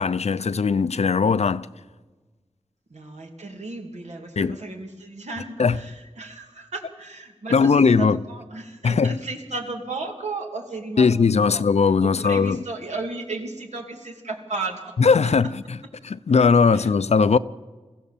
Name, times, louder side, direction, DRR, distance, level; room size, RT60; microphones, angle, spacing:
voice 1, 0.0-1.7 4.4-4.6 5.6-5.8 7.5-8.2 8.8-9.2 11.0-12.6 15.0-15.8 16.0-17.4, left 5 dB, 70° left, 0.6 m, -19 dB
voice 2, 2.9-11.6 12.0-14.9 16.7-16.9, right 3 dB, 85° right, 2.6 m, -34 dB
23.0 x 15.5 x 7.3 m
wide cardioid pair, 80°, 11 cm